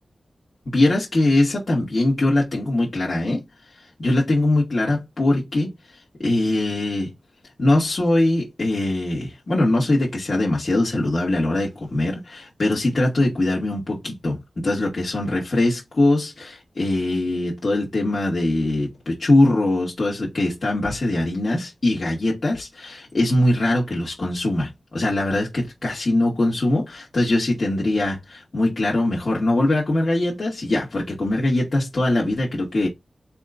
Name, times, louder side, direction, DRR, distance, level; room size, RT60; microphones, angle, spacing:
voice 1, 0.7-3.4 4.0-5.7 6.2-7.1 7.6-32.9, left 1 dB, 45° left, 2.3 m, -22 dB
4.3 x 3.6 x 2.6 m
wide cardioid pair, 85°, 0 cm